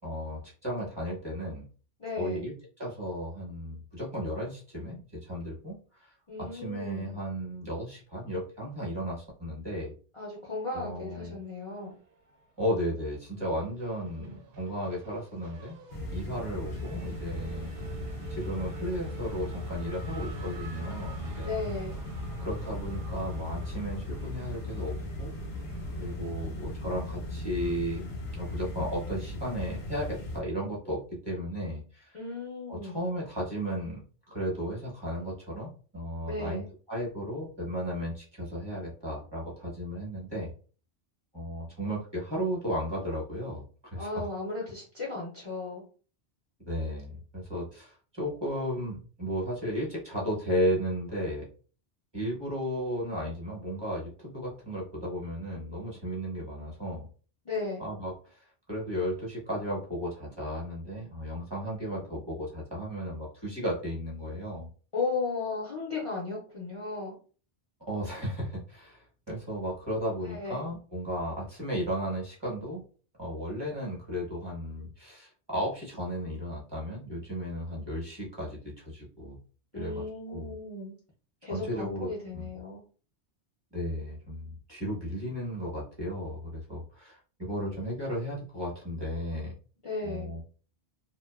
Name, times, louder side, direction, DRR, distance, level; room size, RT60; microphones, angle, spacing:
voice 1, 0.0-1.7 2.2-9.9 10.7-11.4 12.6-15.8 16.1-17.7 18.3-21.5 22.4-25.3 26.0-28.0 28.3-32.2 32.7-36.6 36.9-40.5 41.3-44.3 46.6-51.5 52.1-57.1 57.8-64.7 67.9-72.8 73.2-79.4 79.7-80.5 81.5-82.5 83.7-89.5 90.0-90.4, equal, 25° right, -5 dB, 0.8 m, -34 dB
voice 2, 2.0-2.4 6.3-7.1 10.1-11.9 21.4-22.0 32.1-33.0 36.3-36.7 43.9-45.8 57.4-57.8 64.9-67.1 70.2-70.6 79.7-80.9 81.4-82.8 89.8-90.3, left 3 dB, 40° left, -5 dB, 0.5 m, -35 dB
Race car auto racing / Accelerating revving vroom, 11.7-12.7 13.0-26.7, right 4 dB, 65° right, 0.7 m, -50 dB
sound 1, 15.9-30.4, left 1 dB, 75° left, 0.9 m, -37 dB
2.5 x 2.1 x 2.3 m, 0.39 s
omnidirectional pair, 1.1 m